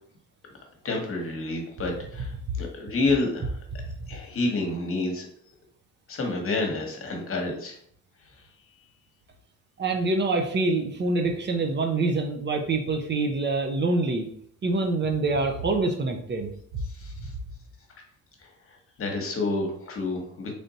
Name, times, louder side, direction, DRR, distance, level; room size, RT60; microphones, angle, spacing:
voice 1, 0.8-3.6 4.1-5.3 6.1-7.8 16.9-17.3 18.4-18.5 19.0-20.5, left 2 dB, 45° left, 2 dB, 1.1 m, -29 dB
voice 2, 9.8-14.3 14.6-16.8, right 3 dB, 35° right, 4 dB, 0.6 m, -26 dB
3.3 x 2.6 x 4.0 m, 0.63 s
cardioid pair, 90°, 30 cm